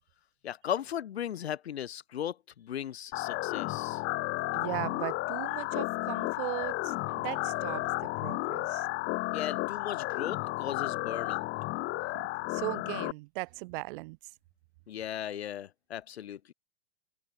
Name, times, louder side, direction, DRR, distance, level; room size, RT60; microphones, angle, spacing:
voice 1, 0.4-4.0 9.3-11.5 14.9-16.5, left 10 dB, 85° left, 4.8 m, -37 dB
sound 1, 3.1-13.1, left 21 dB, 40° left, 1.0 m, -33 dB
voice 2, 4.5-6.9 7.2-7.9 8.2-8.9 12.0-14.2, right 24 dB, 55° right, 1.7 m, -38 dB
open air
hypercardioid pair, 120°, 31 cm